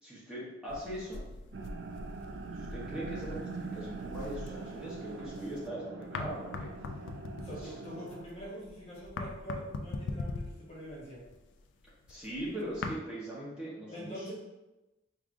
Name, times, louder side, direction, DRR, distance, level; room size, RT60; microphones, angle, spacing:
voice 1, 0.0-1.2 2.5-6.9 7.6-7.7 12.1-14.3, right 1 dB, 5° right, -9 dB, 0.9 m, -41 dB
sound 1, 0.7-5.7 6.0-13.0, left 3 dB, 80° left, 0.3 m, -42 dB
sound 2, 1.5-8.3, right 4 dB, 70° right, 0.3 m, -43 dB
voice 2, 7.4-11.2 13.9-14.3, equal, 35° left, -6 dB, 1.1 m, -44 dB
4.8 x 2.4 x 2.5 m, 1.0 s
head